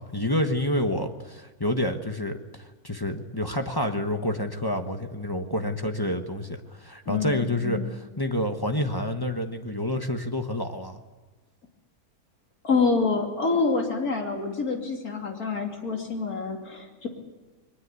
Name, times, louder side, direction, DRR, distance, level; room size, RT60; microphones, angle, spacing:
voice 1, 0.0-11.0, left 1 dB, 15° left, 5 dB, 1.2 m, -28 dB
voice 2, 7.1-7.9 12.6-17.1, left 4 dB, 60° left, 1 dB, 3.5 m, -27 dB
22.0 x 20.0 x 8.4 m, 1.2 s
omnidirectional pair, 1.8 m